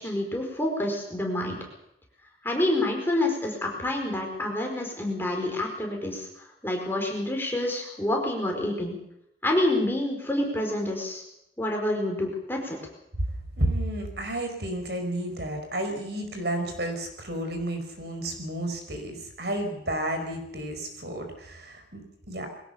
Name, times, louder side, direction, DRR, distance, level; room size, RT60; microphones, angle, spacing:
voice 1, 0.0-1.6 2.4-9.0 9.4-11.2 11.6-12.8, left 1 dB, 10° left, 1 dB, 4.7 m, -28 dB
voice 2, 13.5-22.5, right 1 dB, 60° right, 5 dB, 4.8 m, -31 dB
22.5 x 17.5 x 7.0 m, 0.81 s
head